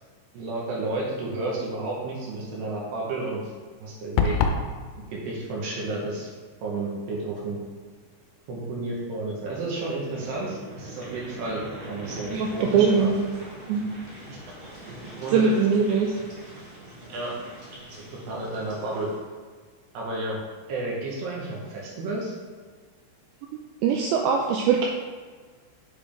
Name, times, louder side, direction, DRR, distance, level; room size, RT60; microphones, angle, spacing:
voice 1, 0.3-3.5 3.8-4.4 4.9-6.3 6.6-7.6 8.5-13.1 14.3-14.4 15.2-15.5 17.1-17.3 18.3-19.1 19.9-20.4 20.7-22.3, right 2 dB, 70° right, -4 dB, 2.9 m, -31 dB
sound 1, 4.2-4.7, left 5 dB, 80° left, 2.6 m, -22 dB
sound 2, 10.0-19.2, right 1 dB, 40° right, 1.3 m, -42 dB
voice 2, 12.3-13.2 13.7-13.9 15.3-16.2 23.8-24.9, right 5 dB, 90° right, 0 dB, 2.5 m, -21 dB
7.3 x 6.9 x 3.5 m, 1.5 s
omnidirectional pair, 5.7 m